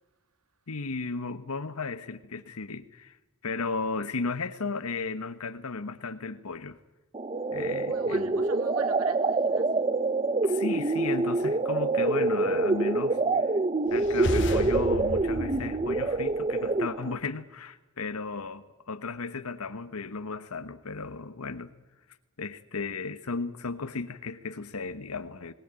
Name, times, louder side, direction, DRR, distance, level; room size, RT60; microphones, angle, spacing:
voice 1, 0.7-3.2 3.4-6.8 7.5-8.4 10.4-13.5 13.9-21.7 22.4-25.5, left 4 dB, 85° left, 1.0 m, -35 dB
sound 1, 7.1-17.1, right 3 dB, 25° right, 0.7 m, -26 dB
voice 2, 7.8-9.8, right 3 dB, 80° right, 2.4 m, -44 dB
sound 2, 13.9-16.7, left 1 dB, 55° left, 2.4 m, -34 dB
21.0 x 18.0 x 8.9 m
head